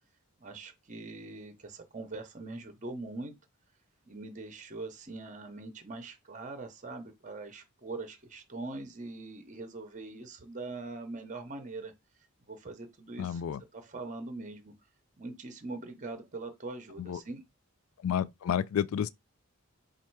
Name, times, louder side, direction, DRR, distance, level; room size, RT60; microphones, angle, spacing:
voice 1, 0.4-3.3 4.0-11.9 12.5-13.4 13.7-14.7 15.2-17.4, right 3 dB, 35° right, 0.7 m, -42 dB
voice 2, 13.2-13.6 17.1-17.2 18.0-19.1, left 8 dB, 70° left, 0.3 m, -30 dB
4.3 x 2.4 x 4.5 m
head